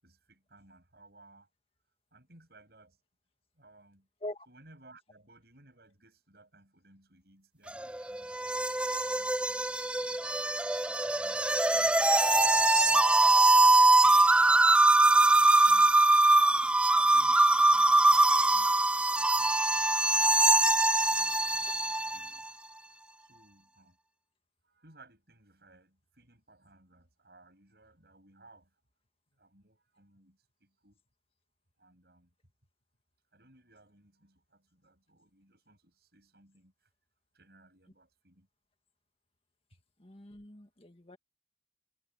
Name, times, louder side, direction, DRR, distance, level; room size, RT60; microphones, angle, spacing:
voice 1, 0.0-1.5 2.1-3.0 3.5-4.1 4.5-10.2 10.7-14.6 15.1-20.3 20.9-22.6 23.2-24.0 24.6-28.8 29.3-31.0 31.8-32.3 33.3-36.9 37.3-38.5, right 2 dB, 65° right, 7.4 m, -61 dB
sound 1, 7.7-22.3, right 2 dB, 5° right, 0.3 m, -23 dB
voice 2, 40.0-41.2, left 1 dB, 35° left, 2.0 m, -43 dB
head